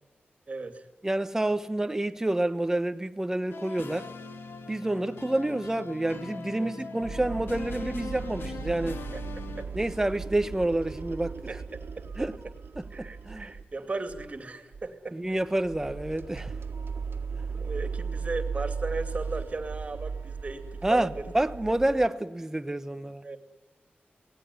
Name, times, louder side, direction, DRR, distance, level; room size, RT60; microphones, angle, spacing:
voice 1, 0.5-0.8 1.4-1.5 6.5-6.7 9.1-9.7 11.5-12.3 12.9-15.2 17.5-21.2 23.2-23.4, right 3 dB, 35° right, 2.8 m, -37 dB
voice 2, 1.0-4.1 4.7-9.0 9.7-11.4 12.2-12.4 12.8-13.5 15.1-16.5 20.8-23.3, right 1 dB, 15° right, 1.0 m, -28 dB
sound 1, 3.5-9.6, left 4 dB, 85° left, 2.1 m, -41 dB
sound 2, 7.0-13.7 14.1-14.4 14.7-14.9 15.3-22.1, right 5 dB, 75° right, 1.8 m, -37 dB
24.0 x 19.0 x 9.6 m
wide cardioid pair, 155°, 4 cm